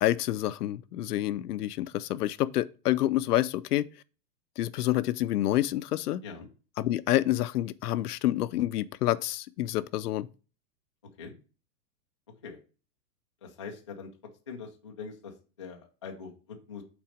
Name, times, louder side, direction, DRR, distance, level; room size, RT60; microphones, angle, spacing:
voice 1, 0.0-3.8 4.6-6.2 6.8-10.3, left 14 dB, 70° left, 0.6 m, -28 dB
voice 2, 13.4-14.1 14.5-16.8, left 5 dB, 20° left, 0.3 m, -43 dB
6.0 x 4.1 x 4.9 m
hypercardioid pair, 155°, 48 cm